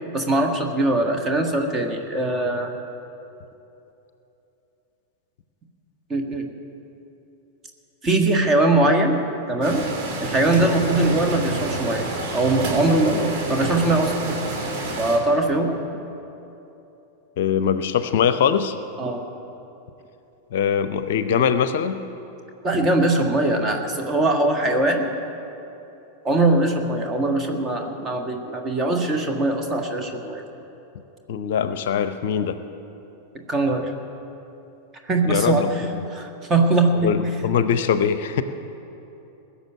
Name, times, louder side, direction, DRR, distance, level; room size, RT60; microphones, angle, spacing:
voice 1, 0.1-2.7 6.1-6.5 8.0-9.9 10.2-14.4 15.0-15.8 19.0-19.2 22.6-25.1 26.2-30.4 33.5-33.9 35.0-35.8 36.1-37.2, right 2 dB, 25° right, 5 dB, 1.6 m, -21 dB
sound 1, 9.6-15.2, right 2 dB, 40° right, 2.8 m, -28 dB
voice 2, 17.4-18.8 20.5-22.0 31.3-32.6 35.3-36.0 37.0-38.4, left 8 dB, 55° left, 12 dB, 0.6 m, -22 dB
19.5 x 7.0 x 9.2 m, 2.9 s
figure-of-eight pair, 90°, 0 cm